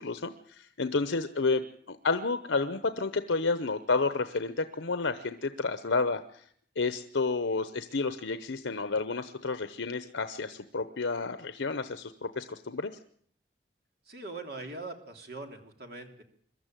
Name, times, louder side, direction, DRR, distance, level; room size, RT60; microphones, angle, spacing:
voice 1, 0.0-6.5 6.8-13.0, left 3 dB, 85° left, 10 dB, 0.9 m, -30 dB
voice 2, 14.1-16.2, right 2 dB, 55° right, 4 dB, 3.1 m, -42 dB
23.0 x 13.0 x 9.2 m, 0.63 s
head